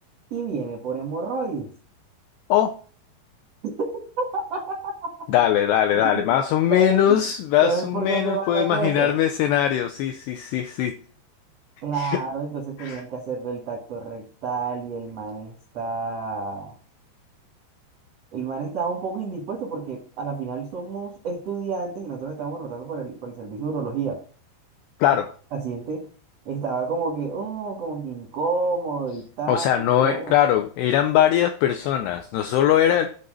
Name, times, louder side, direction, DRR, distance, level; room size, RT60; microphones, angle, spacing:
voice 1, 0.3-1.7 3.6-3.7 4.2-5.1 6.1-6.2 6.7-7.2 7.6-9.1 11.8-16.7 18.3-24.2 25.5-26.1 26.4-30.3, right 4 dB, 75° right, 1.4 m, -29 dB
voice 2, 5.3-11.0 11.9-12.2 12.8-13.0 25.0-25.3 29.5-33.2, left 11 dB, 90° left, 2.3 m, -21 dB
8.8 x 4.1 x 6.2 m
omnidirectional pair, 5.4 m